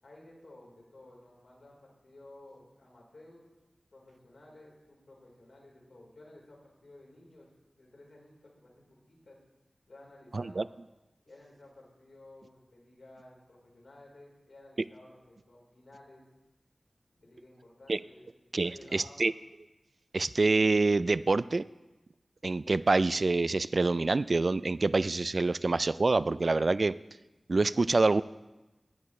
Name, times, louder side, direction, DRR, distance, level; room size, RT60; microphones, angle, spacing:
voice 1, 0.0-3.5 3.9-9.4 9.9-10.7 11.3-16.3 17.1-18.3 18.6-19.2, left 1 dB, 75° left, -2 dB, 3.9 m, -55 dB
voice 2, 10.3-10.6 17.9-18.0 18.5-19.3 20.1-21.6 22.4-26.9 27.5-28.2, right 3 dB, 65° right, 17 dB, 0.3 m, -26 dB
16.5 x 10.5 x 3.2 m, 1.0 s
cardioid pair, 40°, 0 cm